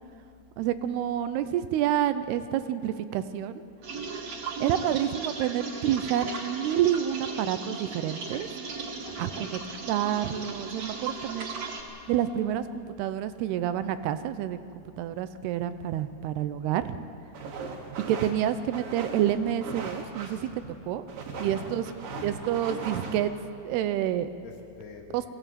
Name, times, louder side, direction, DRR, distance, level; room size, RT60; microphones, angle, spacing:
voice 1, 0.6-3.6 4.6-8.5 9.2-9.6 9.9-11.6 12.1-17.0 18.1-20.5 20.8-21.0 21.4-21.9 22.2-23.3 23.6-24.3 25.1-25.3, right 11 dB, 90° right, 11 dB, 2.9 m, -28 dB
sound 1, 3.8-11.8, right 4 dB, 50° right, 2.9 m, -37 dB
voice 2, 9.0-9.4 21.3-22.3 24.4-25.3, left 5 dB, 90° left, 1 dB, 4.4 m, -46 dB
sound 2, 17.3-23.2, right 4 dB, 65° right, 3.5 m, -39 dB
22.0 x 17.0 x 9.1 m, 2.5 s
omnidirectional pair, 4.5 m